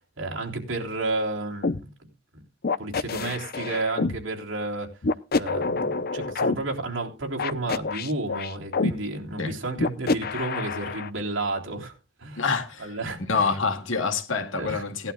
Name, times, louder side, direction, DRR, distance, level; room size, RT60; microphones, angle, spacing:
voice 1, 0.2-1.9 2.3-2.4 2.8-4.9 5.3-11.9 12.2-12.4 12.8-13.6 14.5-14.8, right 2 dB, 70° right, 3.6 m, -31 dB
sound 1, 1.6-1.8 2.6-4.2 5.0-6.5 7.4-8.9 9.8-11.1, left 3 dB, 50° left, 0.7 m, -26 dB
voice 2, 12.4-12.9 13.3-15.1, left 4 dB, 75° left, 2.2 m, -26 dB
18.5 x 11.5 x 2.3 m
head